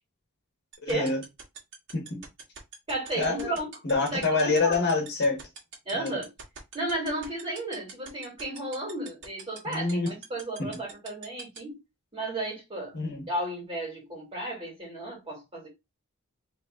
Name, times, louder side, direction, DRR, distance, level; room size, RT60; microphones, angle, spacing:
sound 1, 0.7-11.6, right 6 dB, 60° right, 1.7 m, -42 dB
voice 1, 0.8-1.2 1.9-2.2 3.2-3.5 3.8-5.4 5.9-6.1 9.6-10.1 10.6-10.7 12.9-13.3, left 3 dB, 50° left, 1.4 m, -26 dB
voice 2, 2.9-3.7 4.0-4.8 5.8-6.3 6.7-11.8 12.1-13.0 13.3-15.7, right 1 dB, 25° right, 2.5 m, -33 dB
3.4 x 3.1 x 3.6 m
head